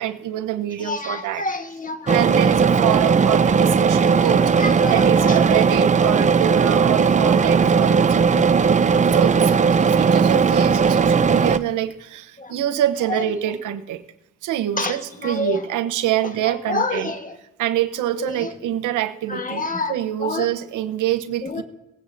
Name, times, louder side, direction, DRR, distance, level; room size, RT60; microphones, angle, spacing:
voice 1, 0.0-1.4 2.1-4.4 4.9-8.1 9.1-14.0 14.4-17.1 17.6-19.6 19.9-21.6, right 12 dB, 85° right, 9 dB, 0.9 m, -25 dB
voice 2, 0.8-2.4 3.7-5.7 8.3-8.5 12.4-12.5 13.1-13.5 14.8-15.6 16.2-17.4 18.2-18.6 19.3-19.9 20.2-20.5 21.4-21.6, left 3 dB, 25° left, 8 dB, 1.3 m, -29 dB
sound 1, 2.1-11.6, right 6 dB, 25° right, 0.5 m, -17 dB
20.5 x 9.7 x 2.6 m, 0.94 s
cardioid pair, 90°, 30 cm